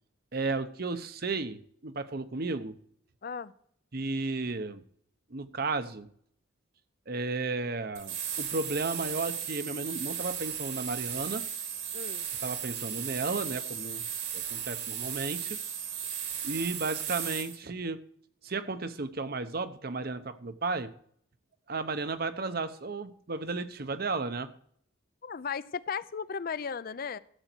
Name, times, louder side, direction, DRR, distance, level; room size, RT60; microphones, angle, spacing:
voice 1, 0.3-2.8 3.9-4.8 5.3-6.1 7.1-11.4 12.4-14.0 14.3-15.6 16.4-18.0 18.4-20.9 21.7-24.5, right 3 dB, 50° right, 11 dB, 0.8 m, -33 dB
voice 2, 3.2-3.5 11.9-12.3 25.2-27.2, left 6 dB, 45° left, 17 dB, 0.5 m, -35 dB
sound 1, 7.9-17.6, right 8 dB, 75° right, 2.5 m, -36 dB
13.5 x 8.0 x 4.4 m, 0.64 s
head